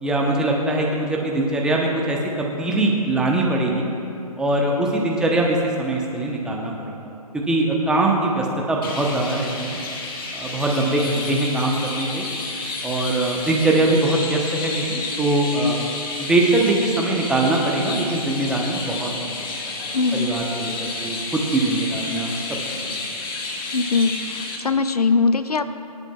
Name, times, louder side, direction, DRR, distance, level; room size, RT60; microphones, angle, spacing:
voice 1, 0.0-3.9 4.4-6.9 7.3-9.8 10.3-12.3 12.8-15.8 16.2-19.4 19.8-22.3 22.9-23.0, right 2 dB, 5° right, -1 dB, 1.0 m, -22 dB
Chirp tweet, 8.8-24.6, left 3 dB, 35° left, 1.5 m, -31 dB
voice 2, 19.9-20.3 23.7-25.6, left 4 dB, 75° left, 11 dB, 0.7 m, -21 dB
24.0 x 10.5 x 2.4 m, 2.7 s
figure-of-eight pair, 135°, 20 cm